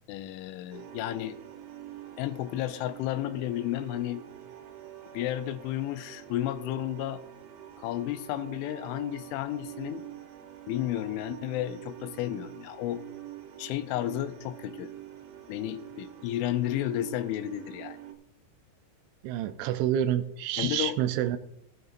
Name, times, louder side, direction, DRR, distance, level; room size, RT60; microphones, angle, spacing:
voice 1, 0.1-1.4 2.2-4.2 5.1-7.2 7.8-10.1 10.7-13.0 13.6-14.9 15.5-18.0 20.6-21.0, left 13 dB, 85° left, 11 dB, 3.0 m, -32 dB
sound 1, 0.7-18.1, right 12 dB, 65° right, 2.4 m, -46 dB
voice 2, 19.2-21.4, right 11 dB, 85° right, 10 dB, 2.7 m, -28 dB
16.5 x 9.3 x 2.5 m, 0.77 s
omnidirectional pair, 5.5 m